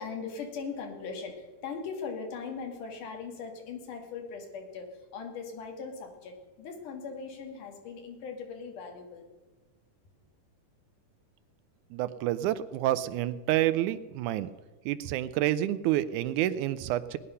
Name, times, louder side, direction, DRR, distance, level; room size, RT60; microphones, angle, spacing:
voice 1, 0.0-9.3, left 5 dB, 75° left, 3 dB, 3.3 m, -39 dB
voice 2, 11.9-14.5 14.9-17.2, right 13 dB, 80° right, 14 dB, 1.9 m, -28 dB
19.0 x 9.7 x 5.5 m, 1.3 s
omnidirectional pair, 3.8 m